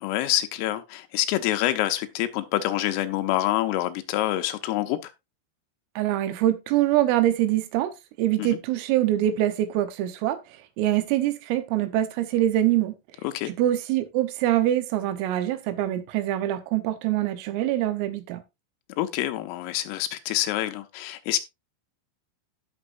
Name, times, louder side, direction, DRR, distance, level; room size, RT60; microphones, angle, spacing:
voice 1, 0.0-5.1 8.4-8.6 13.2-13.5 19.0-21.4, left 14 dB, 85° left, 3.3 m, -26 dB
voice 2, 6.0-7.9 8.2-10.4 10.8-13.0 13.6-18.4, right 13 dB, 80° right, 3.6 m, -24 dB
16.5 x 6.2 x 2.5 m
omnidirectional pair, 5.9 m